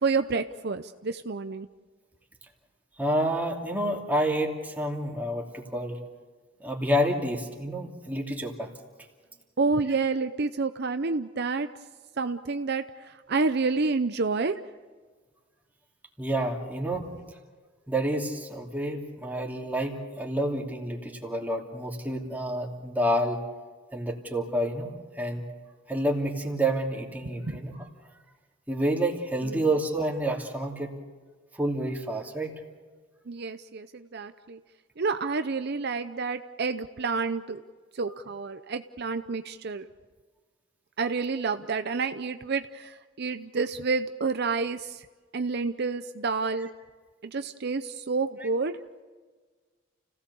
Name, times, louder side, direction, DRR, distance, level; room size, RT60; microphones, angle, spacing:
voice 1, 0.0-1.7 9.6-11.7 12.2-14.5 27.4-27.6 29.4-29.6 33.3-34.6 35.0-37.6 37.9-39.8 41.0-45.1 45.3-46.7 47.2-48.8, right 4 dB, 55° right, 9 dB, 0.7 m, -29 dB
voice 2, 3.0-6.0 6.6-8.7 16.2-17.1 17.9-23.4 23.9-24.9 25.2-25.4 25.9-27.8 28.7-30.9 31.5-32.5 46.6-46.7 48.4-48.5, right 1 dB, 10° right, 0 dB, 2.8 m, -29 dB
30.0 x 17.0 x 7.0 m, 1.5 s
head